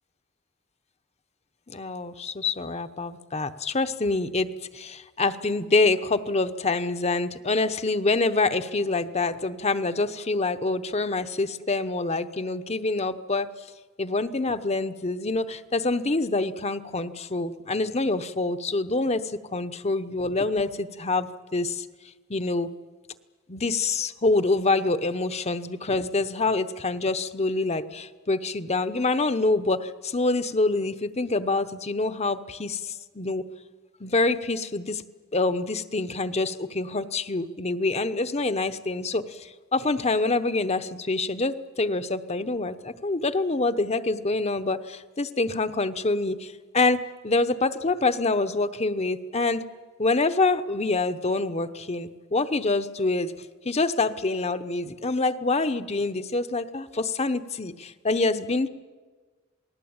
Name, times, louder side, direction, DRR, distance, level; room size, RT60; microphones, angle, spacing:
voice 1, 1.7-4.5 4.7-13.5 14.0-21.9 22.3-22.7 23.5-33.4 34.0-35.0 35.3-49.6 50.0-53.3 53.6-58.7, left 3 dB, 30° left, 10 dB, 0.9 m, -26 dB
28.0 x 19.5 x 8.8 m, 1.4 s
head